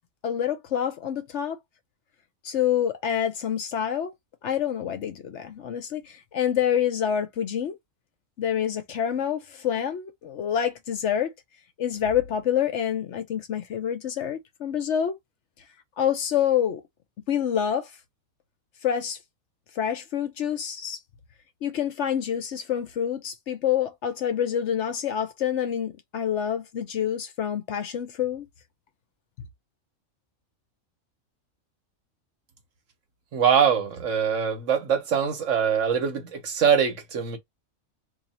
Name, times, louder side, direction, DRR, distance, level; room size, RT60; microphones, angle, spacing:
voice 1, 0.2-1.6 2.4-4.1 4.4-7.8 8.4-11.3 11.8-15.1 16.0-16.8 17.3-17.9 18.8-19.2 19.8-21.0 21.6-28.5, left 9 dB, 65° left, 0.9 m, -27 dB
voice 2, 33.3-37.4, right 7 dB, 65° right, 1.2 m, -23 dB
2.7 x 2.7 x 4.1 m
omnidirectional pair, 1.4 m